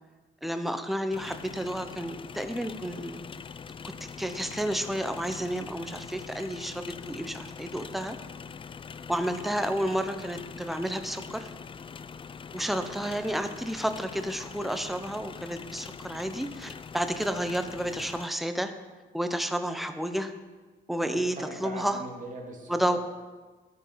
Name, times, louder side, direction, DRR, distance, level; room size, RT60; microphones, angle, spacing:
voice 1, 0.4-3.2 4.2-8.2 9.1-11.5 12.5-18.7 19.1-20.3 20.9-21.4 21.6-22.0 22.7-23.0, equal, ahead, 8 dB, 0.8 m, -31 dB
sound 1, 1.1-18.3, left 6 dB, 25° left, 0.4 m, -43 dB
voice 2, 21.0-23.0, right 3 dB, 40° right, 0 dB, 2.4 m, -41 dB
13.0 x 5.4 x 5.7 m, 1.3 s
cardioid pair, 90°, 20 cm